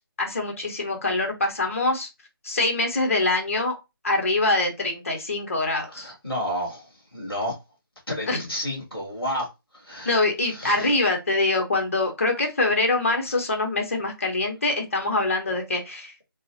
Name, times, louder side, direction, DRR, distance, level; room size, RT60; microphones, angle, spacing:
voice 1, 0.2-2.1 2.4-3.8 4.0-6.1 8.3-8.4 10.0-16.2, left 2 dB, 35° left, 3 dB, 0.9 m, -24 dB
voice 2, 5.9-7.6 8.1-9.5 9.7-10.2 10.5-10.9 15.5-15.6, equal, ahead, -21 dB, 0.3 m, -31 dB
3.7 x 2.1 x 2.7 m, 0.24 s
figure-of-eight pair, 165°, 12 cm